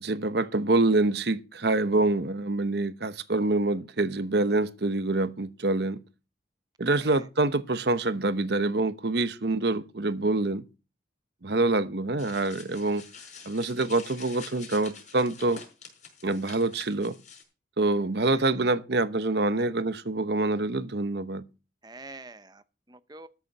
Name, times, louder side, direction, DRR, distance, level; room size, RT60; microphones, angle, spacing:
voice 1, 0.0-6.0 6.8-10.7 11.4-13.0 13.5-15.6 16.2-17.2 17.8-21.5, right 2 dB, 60° right, 0.9 m, -26 dB
voice 2, 6.9-7.3 18.2-18.4 21.8-23.3, right 3 dB, 20° right, 0.7 m, -47 dB
sound 1, 12.2-17.4, left 6 dB, 40° left, 5.1 m, -47 dB
13.5 x 7.0 x 5.9 m
head